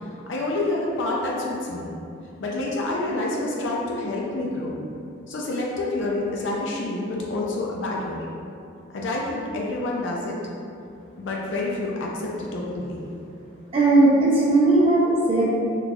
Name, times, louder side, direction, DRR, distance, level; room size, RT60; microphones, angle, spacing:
voice 1, 0.0-1.9 2.4-4.7 5.3-8.3 8.9-10.4 11.2-13.0, left 2 dB, 65° left, -3 dB, 0.4 m, -28 dB
voice 2, 13.7-15.5, right 2 dB, 30° right, -6 dB, 0.5 m, -18 dB
3.9 x 3.1 x 2.3 m, 2.5 s
head